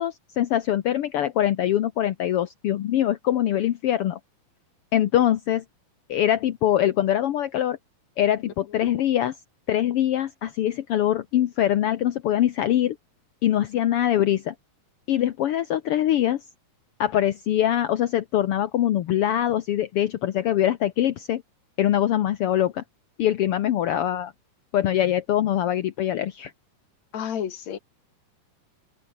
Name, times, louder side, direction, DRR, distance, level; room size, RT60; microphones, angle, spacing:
voice 1, 0.0-4.2 4.9-5.6 6.1-7.8 8.2-9.4 9.7-13.0 13.4-14.5 15.1-16.4 17.0-21.4 21.8-22.8 23.2-24.3 24.7-26.5, left 11 dB, 75° left, 1.3 m, -23 dB
voice 2, 27.1-27.8, left 9 dB, 60° left, 3.1 m, -30 dB
open air
omnidirectional pair, 3.9 m